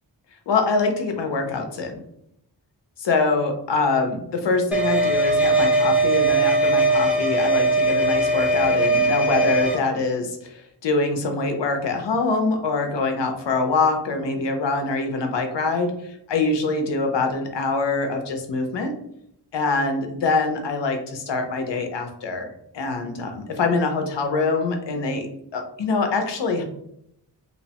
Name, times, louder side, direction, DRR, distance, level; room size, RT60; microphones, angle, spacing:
voice 1, 0.5-2.0 3.0-18.9 19.5-22.5 22.7-25.3 25.5-26.6, left 3 dB, 80° left, 5 dB, 0.6 m, -24 dB
sound 1, 4.7-9.7, right 2 dB, 5° right, 0.5 m, -20 dB
2.9 x 2.0 x 2.8 m, 0.74 s
wide cardioid pair, 95°, 42 cm